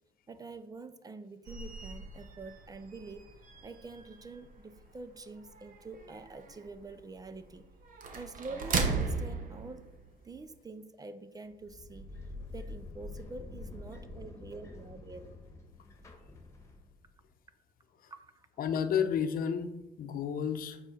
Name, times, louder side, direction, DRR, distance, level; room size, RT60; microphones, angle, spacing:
voice 1, 0.3-3.3 3.6-7.7 8.1-9.8 10.2-12.1 12.5-15.3 18.1-18.5, right 3 dB, 20° right, 12 dB, 0.5 m, -46 dB
sound 1, 1.5-10.4, right 4 dB, 55° right, 1.2 m, -38 dB
sound 2, 11.5-17.1, left 2 dB, 15° left, 1.4 m, -47 dB
voice 2, 18.6-20.8, left 7 dB, 60° left, 8 dB, 0.8 m, -32 dB
7.8 x 4.8 x 4.3 m, 0.94 s
cardioid pair, 110°, 17 cm